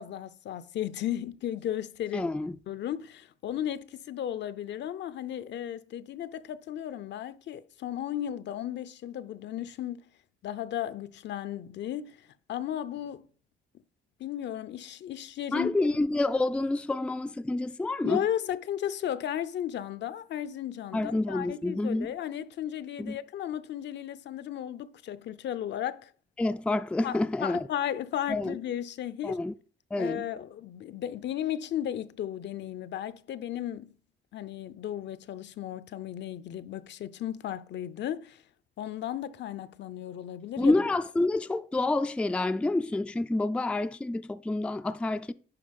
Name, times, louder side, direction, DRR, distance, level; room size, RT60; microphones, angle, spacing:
voice 1, 0.0-2.3 2.7-10.0 10.4-13.3 14.2-15.7 18.0-26.1 27.0-29.4 30.0-33.9 34.3-38.4 38.8-40.7, left 11 dB, 65° left, 0.6 m, -35 dB
voice 2, 2.1-2.6 15.5-18.2 20.9-22.1 23.0-23.2 26.4-27.7 28.3-28.6 29.2-29.5 29.9-30.3 40.6-45.3, left 2 dB, 5° left, 0.3 m, -28 dB
10.5 x 3.9 x 5.2 m
cardioid pair, 90°, 20 cm